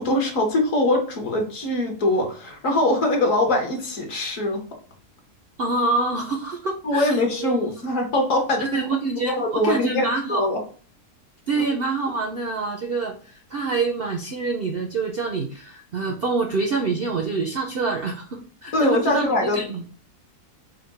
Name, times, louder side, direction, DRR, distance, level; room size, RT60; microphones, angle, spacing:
voice 1, 0.0-4.6 6.8-8.8 9.3-10.6 18.7-19.6, left 1 dB, 60° left, 2 dB, 1.5 m, -22 dB
voice 2, 5.6-7.6 8.6-10.5 11.5-19.8, right 3 dB, 60° right, 3 dB, 0.6 m, -26 dB
4.9 x 2.2 x 4.7 m, 0.43 s
omnidirectional pair, 1.7 m